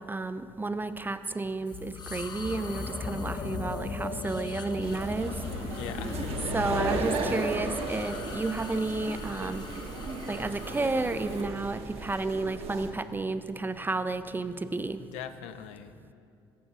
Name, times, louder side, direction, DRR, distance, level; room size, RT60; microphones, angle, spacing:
voice 1, 0.0-5.3 6.5-9.6 10.3-15.0, right 3 dB, 15° right, 11 dB, 0.3 m, -31 dB
sound 1, 1.7-11.5, left 3 dB, 35° left, 0.7 m, -37 dB
sound 2, 4.8-12.9, right 3 dB, 55° right, 0.9 m, -36 dB
voice 2, 5.6-6.4 15.0-16.1, left 9 dB, 70° left, 9 dB, 0.4 m, -42 dB
14.0 x 6.8 x 2.6 m, 2.4 s
hypercardioid pair, 50°, 12 cm